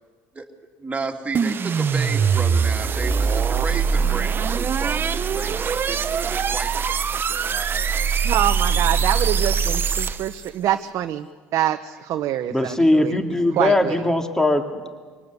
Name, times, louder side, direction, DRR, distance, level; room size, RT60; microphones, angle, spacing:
voice 1, 0.8-8.4, right 4 dB, 20° right, 2 dB, 2.9 m, -33 dB
sound 1, 1.3-10.4, right 6 dB, 35° right, 1.0 m, -22 dB
voice 2, 8.2-11.3 11.5-13.2 13.6-14.1, right 12 dB, 60° right, 7 dB, 0.9 m, -25 dB
voice 3, 12.5-14.9, left 1 dB, 10° left, 5 dB, 2.4 m, -20 dB
25.0 x 19.0 x 8.2 m, 1.5 s
supercardioid pair, 80°, 6 cm